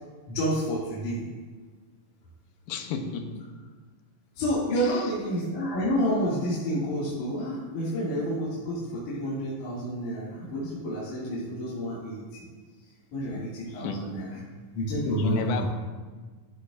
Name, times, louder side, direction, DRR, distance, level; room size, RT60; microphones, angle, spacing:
voice 1, 0.3-1.2 4.4-12.2 13.1-14.4 14.7-15.7, equal, 65° left, -9 dB, 3.6 m, -29 dB
voice 2, 2.7-3.5 4.8-4.9 13.7-14.0 15.0-15.7, left 5 dB, 90° left, 6 dB, 2.6 m, -32 dB
13.0 x 12.5 x 2.5 m, 1.4 s
omnidirectional pair, 4.0 m